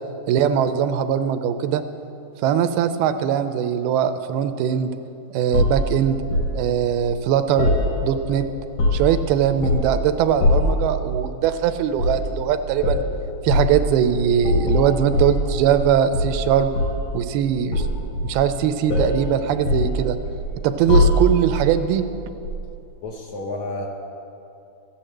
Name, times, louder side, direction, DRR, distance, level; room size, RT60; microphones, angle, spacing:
voice 1, 0.3-1.8 2.4-4.9 5.3-6.2 6.5-7.7 8.0-8.4 8.9-13.0 13.4-16.7 17.1-17.9 18.2-20.2 20.6-22.0, right 9 dB, 85° right, 10 dB, 2.5 m, -21 dB
sound 1, 5.5-6.5 7.6-8.3 8.6-9.2 9.6-10.0 10.4-10.8 11.9-12.2 12.8-13.1 13.5-13.7 14.4-15.9 16.1-17.1 17.7-18.6 18.9-19.2 19.7-20.5 20.9-21.5 22.4-22.6, left 2 dB, 80° left, 5.3 m, -21 dB
voice 2, 23.0-23.9, left 2 dB, 65° left, 0 dB, 1.9 m, -30 dB
15.0 x 10.5 x 7.8 m, 2.7 s
omnidirectional pair, 4.4 m